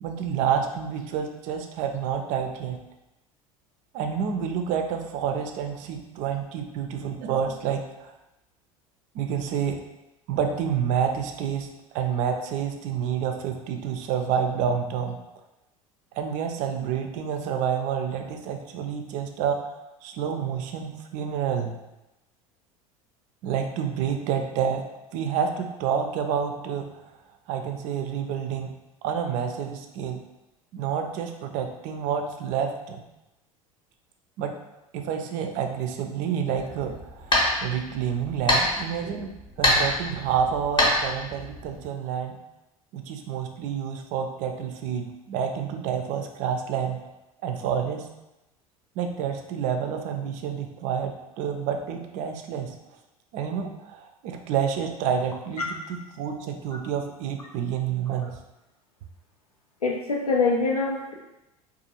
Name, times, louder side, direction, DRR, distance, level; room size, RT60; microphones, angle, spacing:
voice 1, 0.0-2.8 3.9-8.1 9.1-9.8 10.3-11.7 11.9-15.2 16.2-19.7 20.0-21.7 23.4-24.8 25.1-27.0 27.5-28.7 29.0-30.2 30.7-33.0 34.4-34.5 34.9-39.3 39.6-42.4 42.9-47.0 47.4-48.1 49.0-52.7 53.3-58.4, right 7 dB, 45° right, 5 dB, 0.4 m, -28 dB
sound 1, 36.6-41.9, left 1 dB, 25° left, 0.7 m, -26 dB
voice 2, 59.8-61.1, left 3 dB, 85° left, 0 dB, 0.5 m, -24 dB
2.5 x 2.3 x 2.8 m, 0.95 s
figure-of-eight pair, 70°, 18 cm